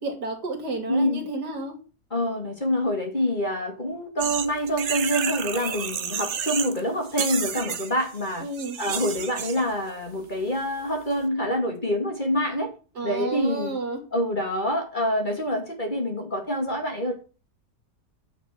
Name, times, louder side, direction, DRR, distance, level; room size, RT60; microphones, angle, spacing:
voice 1, 0.0-1.8 8.4-8.8 12.9-14.0, right 3 dB, 75° right, 3 dB, 3.1 m, -31 dB
voice 2, 0.9-1.2 2.1-8.4 8.8-12.7 13.0-13.8 14.1-17.1, equal, 30° left, 3 dB, 2.3 m, -26 dB
sound 1, 4.2-6.8 7.0-9.6, right 7 dB, 50° right, 1.1 m, -30 dB
9.5 x 5.9 x 6.1 m, 0.35 s
omnidirectional pair, 1.8 m